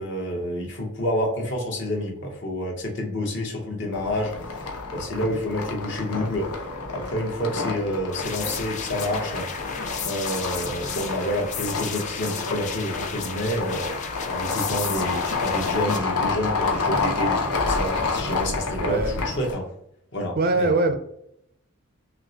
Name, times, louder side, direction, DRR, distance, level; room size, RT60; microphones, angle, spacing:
voice 1, 0.0-6.5 6.9-9.5 10.0-19.7 20.1-20.9, equal, 55° left, 0 dB, 1.0 m, -29 dB
sound 1, 3.9-19.5, left 4 dB, 85° left, 0.7 m, -29 dB
sound 2, 8.1-16.0, left 7 dB, 35° left, 0.3 m, -34 dB
voice 2, 18.8-19.2 20.4-20.9, right 2 dB, 40° right, 7 dB, 0.4 m, -22 dB
5.7 x 2.1 x 2.8 m, 0.73 s
head